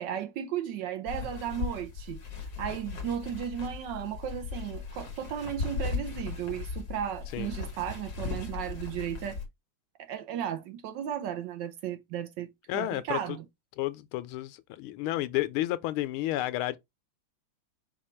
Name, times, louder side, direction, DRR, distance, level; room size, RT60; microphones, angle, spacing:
voice 1, 0.0-2.2 2.6-9.4 10.0-13.4, right 9 dB, 70° right, 1.1 m, -35 dB
sound 1, 1.1-9.5, left 4 dB, 55° left, 1.5 m, -37 dB
voice 2, 12.7-13.4 13.8-16.8, left 15 dB, 85° left, 1.4 m, -31 dB
4.9 x 2.3 x 4.3 m
omnidirectional pair, 2.3 m